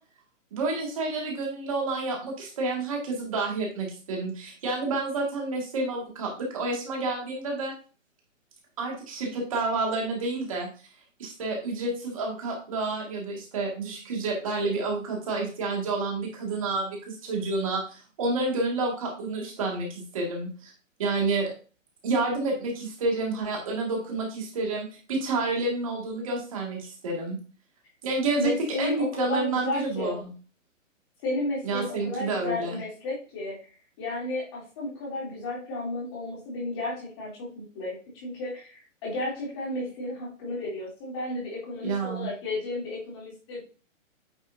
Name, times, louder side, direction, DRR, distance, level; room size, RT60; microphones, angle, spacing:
voice 1, 0.5-7.7 8.8-10.7 11.2-20.7 21.0-21.5 22.0-27.4 28.0-28.5 28.8-30.3 31.6-32.8 41.8-42.3, right 3 dB, 25° right, -1 dB, 2.0 m, -29 dB
voice 2, 28.4-30.2 31.2-33.6 34.0-43.6, left 2 dB, 20° left, -5 dB, 2.9 m, -33 dB
9.2 x 5.4 x 2.7 m, 0.37 s
hypercardioid pair, 180°, 39 cm